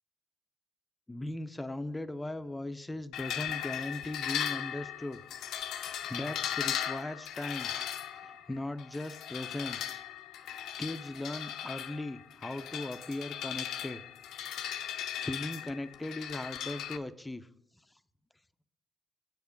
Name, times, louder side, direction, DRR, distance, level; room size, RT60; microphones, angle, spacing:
voice 1, 1.1-5.2 5.7-7.7 8.1-10.0 10.4-14.0 14.6-17.5, left 1 dB, 15° left, 11 dB, 0.6 m, -39 dB
sound 1, 3.1-17.0, left 10 dB, 85° left, 0.6 m, -38 dB
7.8 x 7.2 x 5.3 m, 0.83 s
cardioid pair, 90°, 0 cm